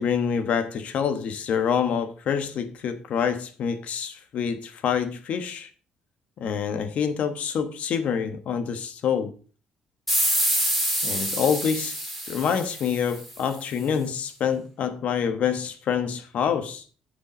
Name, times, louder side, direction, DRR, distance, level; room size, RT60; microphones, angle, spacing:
voice 1, 0.0-5.7 6.4-9.3 11.0-12.0 12.3-16.8, left 7 dB, 60° left, 1.2 m, -26 dB
sound 1, 10.1-13.4, right 1 dB, ahead, 2.5 m, -26 dB
10.5 x 5.4 x 5.1 m
cardioid pair, 135°, 3 cm